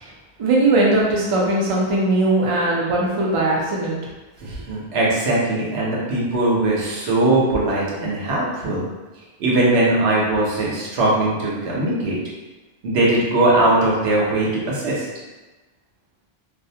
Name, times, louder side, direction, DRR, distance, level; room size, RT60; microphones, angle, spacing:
voice 1, 0.4-4.0, right 2 dB, 45° right, -4 dB, 0.4 m, -19 dB
voice 2, 4.4-8.8 9.4-12.2 12.8-15.1, right 2 dB, 85° right, -5 dB, 0.9 m, -20 dB
2.4 x 2.0 x 2.7 m, 1.2 s
omnidirectional pair, 1.1 m